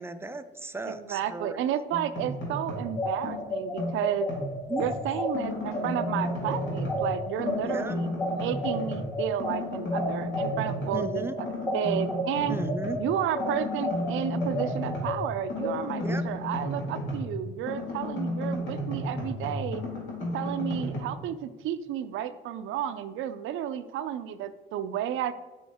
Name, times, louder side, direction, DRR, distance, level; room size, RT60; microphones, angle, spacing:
voice 1, 0.0-1.6 4.7-4.8 7.6-8.0 10.9-11.3 12.5-13.0 16.0-16.2, right 2 dB, 10° right, 10 dB, 0.4 m, -36 dB
voice 2, 0.8-4.3 4.8-11.5 11.7-12.6 13.0-19.8 20.3-25.3, right 10 dB, 80° right, 12 dB, 0.4 m, -32 dB
sound 1, 1.9-2.9 3.2-5.0 5.3-7.1 7.4-9.1 9.4-11.0 11.4-13.0 13.4-17.4 17.7-21.0, left 1 dB, 80° left, 1.9 m, -33 dB
sound 2, 2.8-12.2 12.6-15.7, left 1 dB, 10° left, 1.7 m, -32 dB
6.1 x 5.0 x 3.5 m, 1.2 s
cardioid pair, 90°, 20 cm